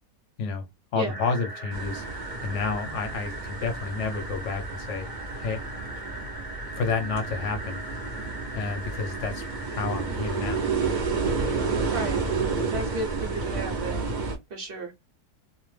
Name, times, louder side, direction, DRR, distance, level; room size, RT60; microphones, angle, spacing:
voice 1, 0.9-2.1 2.4-5.1 5.4-5.6 6.7-7.8 8.5-10.7, left 4 dB, 70° left, 0.7 m, -30 dB
sound 1, 1.1-14.0, right 1 dB, 25° right, 0.5 m, -41 dB
sound 2, 1.7-14.3, right 4 dB, 85° right, 0.4 m, -31 dB
voice 2, 11.9-12.2 12.7-14.1 14.5-14.9, right 2 dB, 45° right, 0.8 m, -33 dB
2.7 x 2.0 x 3.2 m
omnidirectional pair, 1.7 m